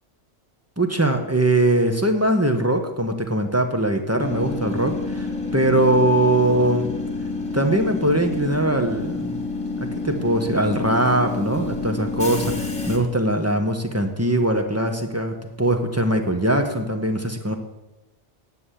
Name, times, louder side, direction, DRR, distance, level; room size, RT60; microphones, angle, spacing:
voice 1, 0.8-6.9 7.5-9.4 9.8-17.6, right 1 dB, 15° right, 5 dB, 1.1 m, -21 dB
Train / Subway metro underground, 4.2-13.0, left 3 dB, 25° left, 1.9 m, -28 dB
9.6 x 7.8 x 8.4 m, 1.0 s
omnidirectional pair, 1.2 m